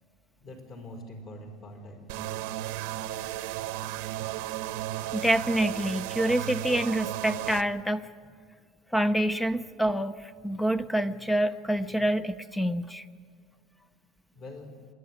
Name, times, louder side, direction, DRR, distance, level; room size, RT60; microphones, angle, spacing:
voice 1, 0.4-2.3 14.3-14.7, left 1 dB, 45° left, 4 dB, 4.8 m, -44 dB
sound 1, 2.1-7.6, right 14 dB, 80° right, 0.9 m, -34 dB
voice 2, 5.1-8.1 8.9-13.0, right 1 dB, 5° left, 13 dB, 0.5 m, -27 dB
26.5 x 11.0 x 10.0 m, 2.1 s
cardioid pair, 145°, 0 cm